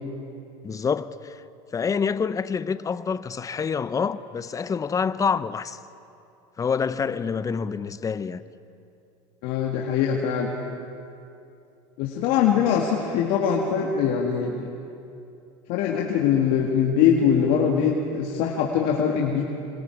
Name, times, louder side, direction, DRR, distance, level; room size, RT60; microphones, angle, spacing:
voice 1, 0.6-1.4 1.7-5.8 6.6-8.4, left 6 dB, 20° left, 0.7 m, -27 dB
voice 2, 9.4-10.5 12.0-14.7 15.7-19.4, left 7 dB, 65° left, 2.1 m, -22 dB
26.5 x 26.0 x 4.8 m
supercardioid pair, 110°, 16 cm